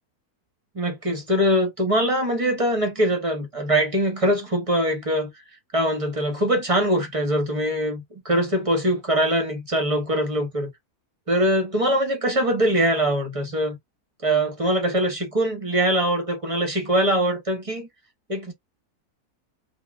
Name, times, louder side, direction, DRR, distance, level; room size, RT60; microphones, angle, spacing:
voice 1, 0.7-5.3 5.7-10.7 11.3-13.8 14.2-17.9 18.3-18.5, equal, 30° right, 0.7 m, -22 dB
2.4 x 2.3 x 3.3 m
omnidirectional pair, 1.6 m